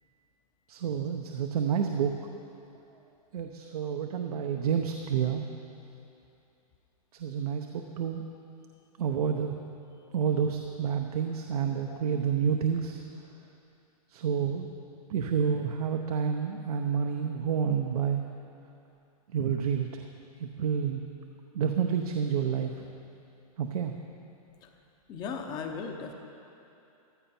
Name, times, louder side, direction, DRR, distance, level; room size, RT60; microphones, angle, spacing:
voice 1, 0.7-2.1 3.3-5.4 7.1-8.2 9.0-9.6 10.1-13.0 14.1-14.7 15.1-18.2 19.3-20.0 20.4-21.0 21.5-22.7 23.6-23.9, right 7 dB, 75° right, 3 dB, 0.9 m, -29 dB
voice 2, 25.1-26.1, left 5 dB, 20° left, 5 dB, 0.8 m, -37 dB
14.5 x 12.5 x 4.4 m, 2.8 s
hypercardioid pair, 160°, 19 cm